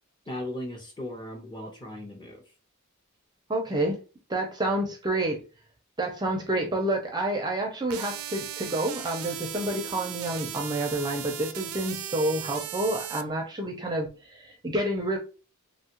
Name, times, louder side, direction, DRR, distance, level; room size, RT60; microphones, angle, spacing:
voice 1, 0.3-2.4, left 1 dB, 20° left, 0.7 m, -37 dB
voice 2, 3.5-4.0 4.3-5.4 6.0-15.2, right 1 dB, 20° right, 0.5 m, -29 dB
sound 1, 7.9-13.2, right 11 dB, 80° right, 0.4 m, -37 dB
2.9 x 2.3 x 2.9 m
head